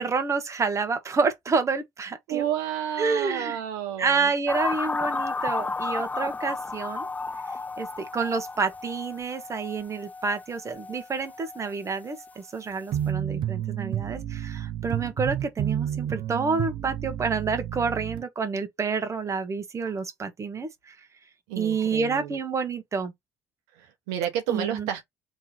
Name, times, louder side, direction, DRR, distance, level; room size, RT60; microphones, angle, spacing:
voice 1, 0.0-2.4 3.0-3.6 4.0-7.1 7.8-20.9 21.6-23.1 24.5-24.9, right 4 dB, 35° right, 1.3 m, -28 dB
voice 2, 2.3-4.3 21.5-22.4 23.8-25.1, right 10 dB, 80° right, 0.9 m, -31 dB
sound 1, 4.5-11.7 12.0-12.3, left 3 dB, 15° left, 0.5 m, -33 dB
sound 2, 12.9-18.2, right 10 dB, 60° right, 0.6 m, -30 dB
3.5 x 3.2 x 4.3 m
hypercardioid pair, 65°, 9 cm